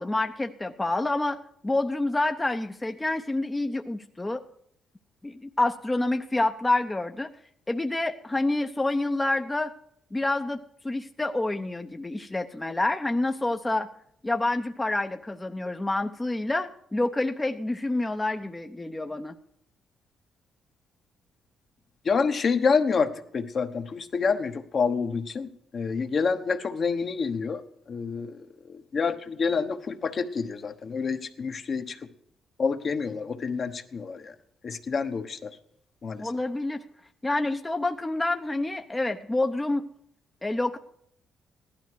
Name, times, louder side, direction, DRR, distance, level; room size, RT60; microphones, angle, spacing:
voice 1, 0.0-1.4 1.6-4.4 5.2-7.3 7.7-9.7 10.1-10.6 10.8-13.9 14.2-19.4 36.2-36.8 37.2-39.8 40.4-40.8, left 2 dB, 15° left, 5 dB, 0.7 m, -28 dB
voice 2, 22.0-27.6 27.9-32.0 32.6-34.3 34.6-35.5 36.0-36.3, left 5 dB, 45° left, 7 dB, 1.1 m, -28 dB
15.5 x 11.5 x 4.7 m, 0.69 s
cardioid pair, 90°, 0 cm